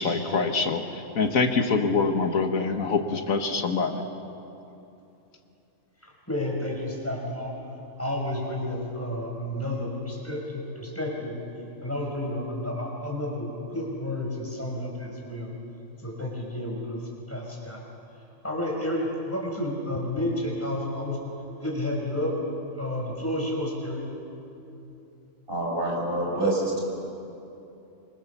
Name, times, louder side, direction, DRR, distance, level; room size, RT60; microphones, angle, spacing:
voice 1, 0.0-4.0, left 4 dB, 80° left, 5 dB, 1.8 m, -25 dB
voice 2, 6.0-7.5 8.0-11.3 11.8-15.5 16.0-17.0 17.3-17.8 18.4-21.2 21.6-22.4 22.7-24.0, left 1 dB, 10° left, -2 dB, 5.5 m, -31 dB
voice 3, 25.5-26.8, right 2 dB, 40° right, -1 dB, 5.4 m, -26 dB
26.5 x 24.5 x 7.2 m, 2.8 s
omnidirectional pair, 1.4 m